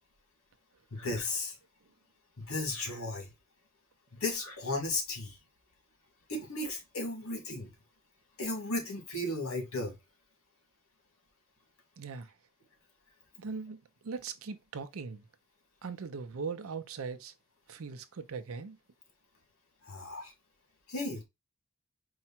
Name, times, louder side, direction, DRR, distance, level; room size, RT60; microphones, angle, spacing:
voice 1, 0.9-1.6 2.4-3.3 4.1-5.4 6.3-7.7 8.4-10.0 19.8-20.3 20.9-21.2, left 2 dB, 90° left, 1.9 m, -35 dB
voice 2, 12.0-12.3 13.4-13.8 14.0-15.3 15.8-17.3 17.7-18.8, right 5 dB, 80° right, 0.6 m, -40 dB
4.7 x 2.2 x 4.3 m
head